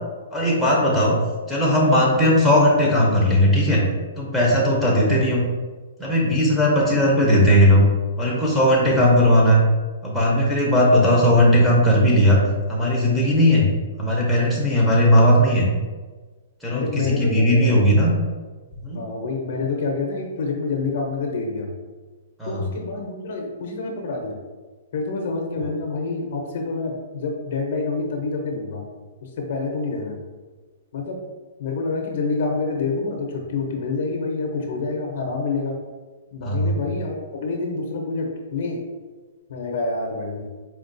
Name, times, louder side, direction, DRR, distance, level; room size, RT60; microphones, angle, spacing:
voice 1, 0.3-1.2 1.5-3.8 4.2-5.4 6.0-7.8 8.2-9.6 10.0-12.4 12.7-13.7 14.0-15.7 16.6-18.1 18.8-19.0 22.4-22.6 36.4-36.8, equal, ahead, -6 dB, 0.7 m, -17 dB
voice 2, 0.9-1.2 16.7-17.8 18.9-21.7 22.4-24.4 24.9-28.8 29.2-30.2 30.9-31.2 31.6-35.8 36.3-38.8 39.5-40.5, left 3 dB, 55° left, 2 dB, 0.6 m, -27 dB
4.3 x 2.3 x 2.6 m, 1.3 s
hypercardioid pair, 160°, 0 cm